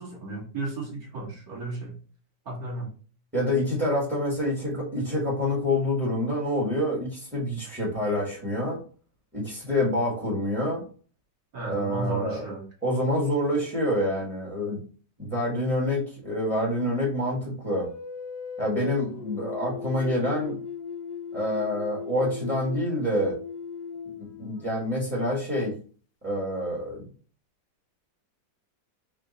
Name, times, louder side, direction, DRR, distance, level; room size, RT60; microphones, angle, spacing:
voice 1, 0.0-2.0 2.5-2.9 11.5-12.7, right 3 dB, 50° right, -3 dB, 2.1 m, -34 dB
voice 2, 3.3-8.8 9.3-10.8 11.6-12.5 12.8-14.8 15.2-17.9 18.6-20.6 21.3-23.4 24.2-25.7 26.2-27.0, left 1 dB, 5° right, -4 dB, 1.2 m, -27 dB
sound 1, 17.7-25.1, left 6 dB, 70° left, 1.1 m, -38 dB
4.4 x 2.4 x 3.9 m, 0.40 s
omnidirectional pair, 2.0 m